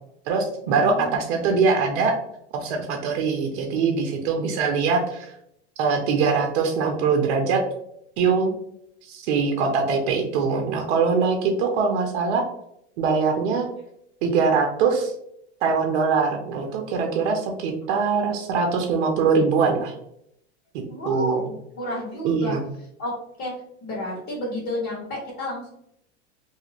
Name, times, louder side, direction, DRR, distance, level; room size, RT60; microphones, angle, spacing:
voice 1, 0.3-2.2 2.5-5.3 5.8-7.6 8.2-8.5 9.1-12.5 13.0-13.7 14.2-15.1 15.6-19.9 21.1-21.4 22.2-22.6, right 5 dB, 65° right, 2 dB, 0.7 m, -22 dB
voice 2, 0.8-1.2 20.9-22.6 23.0-23.1 23.4-23.5 23.8-25.7, left 1 dB, 35° left, -5 dB, 1.5 m, -31 dB
2.7 x 2.4 x 2.9 m, 0.74 s
hypercardioid pair, 110°, 35 cm